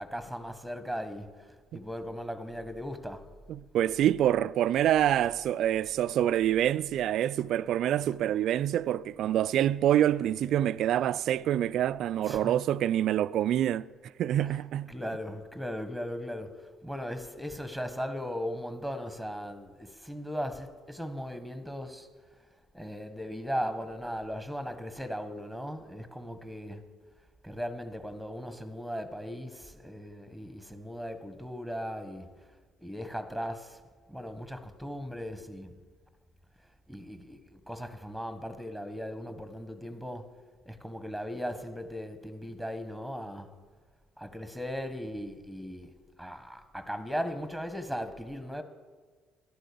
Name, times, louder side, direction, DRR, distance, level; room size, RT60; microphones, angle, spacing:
voice 1, 0.0-3.2 12.2-12.5 14.4-14.5 14.9-22.1 22.7-26.8 27.4-32.3 32.8-33.8 34.1-35.7 36.9-40.3 40.6-43.5 44.2-48.6, equal, ahead, 1.5 m, -38 dB
voice 2, 3.5-13.9 14.2-14.9, right 11 dB, 60° right, 0.3 m, -26 dB
11.5 x 11.0 x 6.8 m
hypercardioid pair, 55°, 0 cm